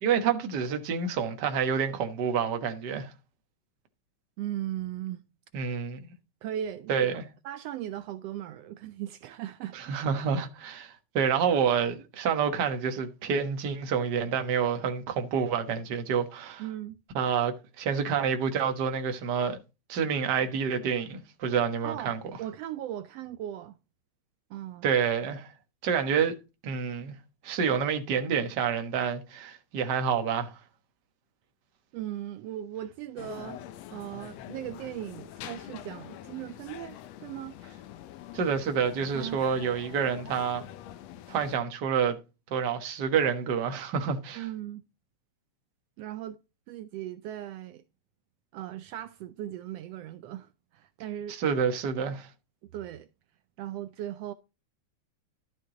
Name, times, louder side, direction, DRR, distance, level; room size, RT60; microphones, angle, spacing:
voice 1, 0.0-3.1 5.5-6.1 6.9-7.2 9.7-16.6 17.1-19.6 19.9-22.2 24.8-25.5 25.8-26.3 26.6-27.1 27.4-30.6 38.3-40.6 41.3-42.2 42.5-44.5 51.3-52.3, right 7 dB, 50° right, 1.4 m, -28 dB
voice 2, 4.4-5.2 6.4-7.1 7.4-10.0 16.6-17.0 21.8-22.1 22.4-23.8 24.5-24.9 31.9-33.6 33.9-37.6 39.1-39.4 44.3-44.8 46.0-46.4 46.7-47.8 48.5-51.4 52.7-53.1 53.6-54.3, right 12 dB, 85° right, 1.4 m, -38 dB
sound 1, 33.2-41.6, left 12 dB, 70° left, 1.8 m, -45 dB
12.0 x 6.4 x 3.9 m
omnidirectional pair, 3.5 m